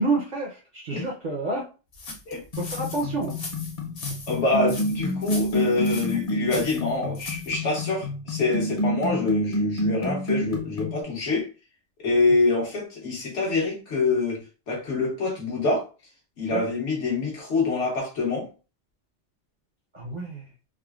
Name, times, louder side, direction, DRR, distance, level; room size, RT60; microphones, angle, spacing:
voice 1, 0.0-1.7 2.6-3.3 16.5-16.6 19.9-20.4, right 2 dB, 50° right, 0.6 m, -28 dB
sound 1, 1.9-7.5, left 3 dB, 60° left, 1.0 m, -39 dB
sound 2, 2.5-11.0, equal, 40° left, 0.6 m, -28 dB
voice 2, 4.3-11.5 12.0-14.4 14.7-15.8 16.4-18.5, left 3 dB, 85° left, 1.4 m, -25 dB
3.6 x 2.1 x 2.3 m
omnidirectional pair, 1.2 m